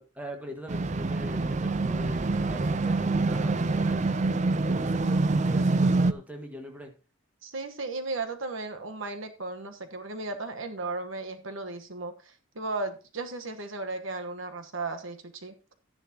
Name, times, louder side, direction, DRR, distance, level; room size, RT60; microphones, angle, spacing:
voice 1, 0.0-4.2 4.7-6.9, equal, 5° right, 1.7 m, -42 dB
sound 1, 0.7-6.1, right 3 dB, 35° right, 0.5 m, -26 dB
voice 2, 7.4-15.5, right 3 dB, 70° right, 1.2 m, -35 dB
12.5 x 10.5 x 2.9 m
head